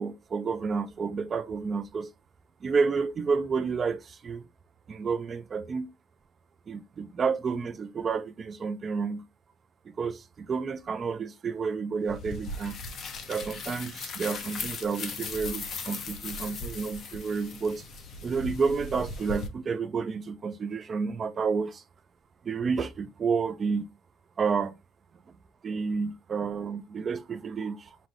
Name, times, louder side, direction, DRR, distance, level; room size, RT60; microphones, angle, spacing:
voice 1, 0.0-2.1 2.6-4.4 4.9-5.9 6.7-9.3 9.9-12.7 13.3-17.8 18.2-21.8 22.4-23.9 24.4-24.7 25.6-28.0, right 5 dB, 25° right, 0.4 m, -30 dB
sound 1, 12.1-19.5, left 3 dB, 35° left, 0.7 m, -38 dB
5.2 x 2.7 x 2.9 m
cardioid pair, 175°, 0 cm